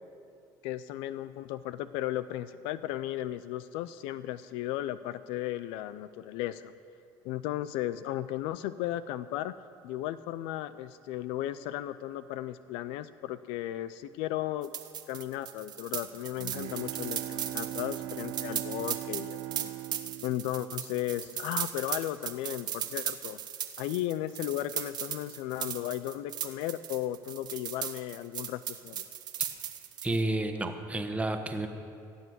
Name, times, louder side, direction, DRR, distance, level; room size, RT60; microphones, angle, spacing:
voice 1, 0.6-6.7 7.2-9.6 9.8-14.7 15.1-19.7 20.2-23.4 23.8-29.0, left 13 dB, 80° left, 14 dB, 0.4 m, -35 dB
sound 1, 14.6-30.2, right 10 dB, 50° right, 1.0 m, -37 dB
Bowed string instrument, 16.0-21.5, right 14 dB, 70° right, 0.4 m, -40 dB
voice 2, 30.0-31.7, right 2 dB, 15° right, 6 dB, 1.2 m, -30 dB
17.0 x 7.1 x 8.0 m, 2.5 s
supercardioid pair, 100°, 9 cm